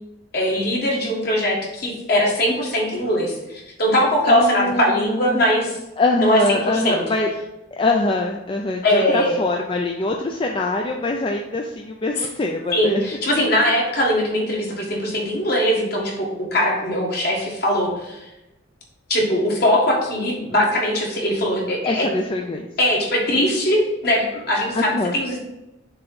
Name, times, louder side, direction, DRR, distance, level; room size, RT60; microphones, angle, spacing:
voice 1, 0.3-5.8 6.2-7.0 8.8-9.4 12.7-18.2 19.1-22.1 22.8-25.4, equal, 50° left, -2 dB, 1.6 m, -21 dB
voice 2, 4.3-5.4 6.0-7.3 7.8-13.0 21.8-22.7 24.7-25.1, left 2 dB, 25° left, 1 dB, 0.4 m, -23 dB
6.6 x 3.0 x 5.4 m, 0.95 s
head